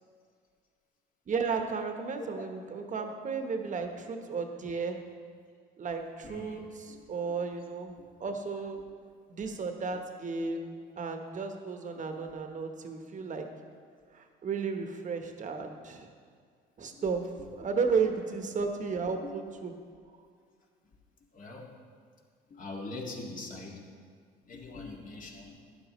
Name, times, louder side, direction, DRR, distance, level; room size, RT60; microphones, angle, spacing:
voice 1, 1.3-5.0 5.8-7.9 8.2-8.8 9.3-13.4 14.1-16.1 16.8-19.7, right 5 dB, 40° right, 5 dB, 1.2 m, -33 dB
voice 2, 6.2-7.0 8.0-8.1 12.1-12.3 16.9-17.1 19.2-19.3 21.3-21.7 22.5-23.8 24.4-25.6, left 3 dB, 45° left, -1 dB, 2.0 m, -43 dB
12.0 x 9.8 x 3.1 m, 2.1 s
cardioid pair, 90°, 19 cm